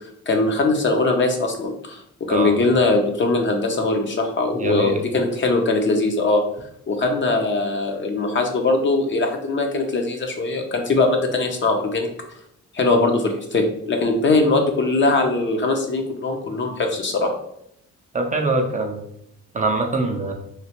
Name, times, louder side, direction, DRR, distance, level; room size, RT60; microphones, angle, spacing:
voice 1, 0.3-2.0 2.3-6.4 6.9-12.1 12.7-17.3, left 3 dB, 40° left, 4 dB, 0.6 m, -21 dB
voice 2, 4.5-5.0 18.1-19.0 19.5-20.3, right 3 dB, 25° right, 2 dB, 0.4 m, -23 dB
3.1 x 2.4 x 2.9 m, 0.73 s
cardioid pair, 90°, 30 cm